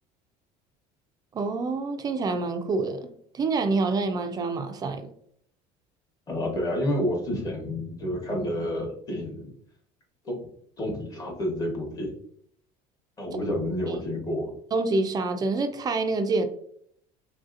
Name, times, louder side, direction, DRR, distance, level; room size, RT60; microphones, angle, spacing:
voice 1, 1.3-5.0 13.9-14.0 14.7-16.4, right 3 dB, 25° right, 0.3 m, -27 dB
voice 2, 6.3-9.5 10.2-10.4 10.8-12.1 13.2-14.5, left 1 dB, 25° left, 1.0 m, -29 dB
3.2 x 2.7 x 2.4 m
cardioid pair, 130°, 14 cm